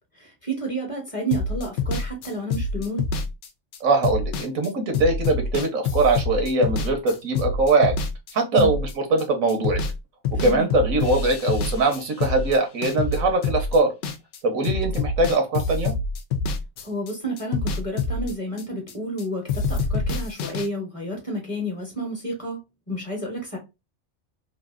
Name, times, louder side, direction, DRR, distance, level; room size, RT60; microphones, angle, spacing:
voice 1, 0.1-3.1 8.5-8.7 10.3-10.7 16.8-23.6, right 1 dB, 30° left, 0.9 m, -31 dB
sound 1, 1.3-10.0 10.2-14.4 14.6-19.2 19.5-20.7, left 4 dB, 65° left, 0.8 m, -26 dB
voice 2, 3.8-7.9 8.3-9.8 10.4-13.9 14.4-15.9, right 3 dB, 90° right, 1.4 m, -22 dB
3.2 x 2.5 x 2.4 m
omnidirectional pair, 1.4 m